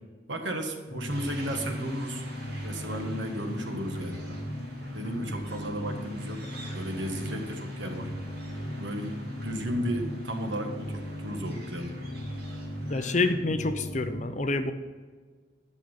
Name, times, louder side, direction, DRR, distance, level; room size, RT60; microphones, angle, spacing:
voice 1, 0.3-2.2 2.6-4.2 4.9-6.4 6.7-8.1 8.8-11.9, equal, 75° right, 4 dB, 1.5 m, -34 dB
sound 1, 0.9-14.2, equal, 85° left, 1.3 m, -37 dB
sound 2, 1.1-13.3, right 1 dB, 55° right, 2.4 m, -49 dB
voice 2, 12.9-14.7, left 3 dB, 40° left, 9 dB, 0.7 m, -27 dB
11.0 x 6.4 x 5.7 m, 1.5 s
head